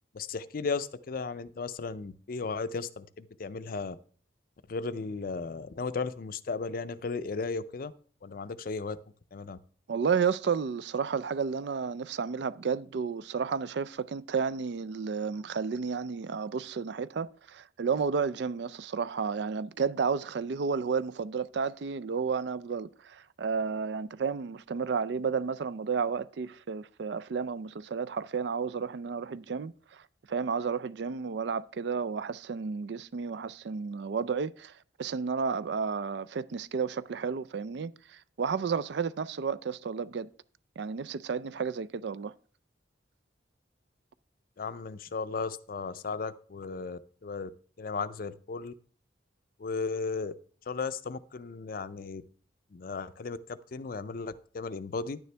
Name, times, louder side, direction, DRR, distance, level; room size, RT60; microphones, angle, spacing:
voice 1, 0.1-4.0 4.7-7.9 8.2-9.0 9.3-9.6 44.6-47.5 47.8-48.7 49.6-50.3 50.7-52.2 52.7-55.2, left 4 dB, 50° left, 0.5 m, -35 dB
voice 2, 9.9-30.0 30.3-34.7 35.0-40.3 40.8-42.3, right 5 dB, 65° right, 0.4 m, -32 dB
10.5 x 9.4 x 3.3 m
head